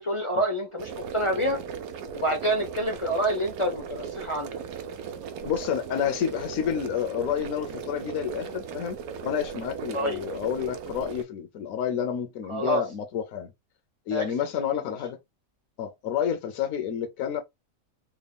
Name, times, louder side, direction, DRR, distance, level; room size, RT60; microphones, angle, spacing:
voice 1, 0.0-1.6 2.1-4.6 9.9-10.2 12.5-12.8 14.1-14.2, right 1 dB, 45° left, 0.4 m, -27 dB
sound 1, 0.8-11.2, right 6 dB, 80° right, 1.0 m, -37 dB
voice 2, 5.4-9.0 9.2-13.5 14.1-15.2 15.8-17.4, left 8 dB, 75° left, 1.0 m, -29 dB
3.5 x 2.2 x 3.3 m
omnidirectional pair, 1.5 m